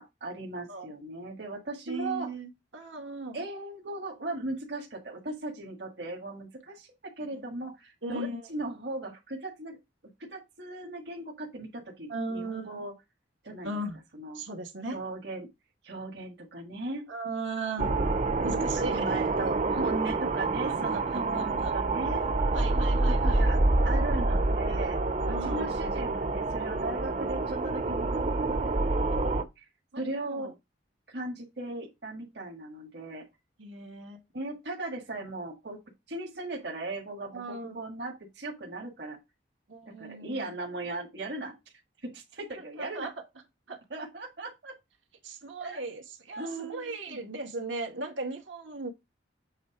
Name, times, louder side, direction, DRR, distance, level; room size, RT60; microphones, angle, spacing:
voice 1, 0.0-2.3 3.3-9.8 10.2-12.9 13.4-13.7 14.1-14.4 14.9-15.5 15.8-17.1 18.7-22.3 23.1-23.6 23.8-25.0 25.3-28.7 29.2-29.7 29.9-30.5 31.1-33.2 34.3-35.8 36.1-39.2 39.8-41.5 42.0-43.1 43.9-44.7 45.6-45.8 46.4-47.3, right 2 dB, 65° right, 1.7 m, -38 dB
voice 2, 1.9-3.4 7.3-7.4 8.0-8.4 12.1-12.8 13.6-14.0 14.3-15.0 17.1-17.9 18.4-19.3 20.7-21.0 21.3-21.7 22.5-23.5 25.3-25.7 29.9-30.5 33.6-34.2 37.3-37.8 39.7-40.5 42.8-43.1 43.7-43.8 45.2-48.9, right 2 dB, 90° right, 2.2 m, -37 dB
sound 1, 17.8-29.4, right 2 dB, 35° right, 0.6 m, -27 dB
8.0 x 3.4 x 4.8 m
head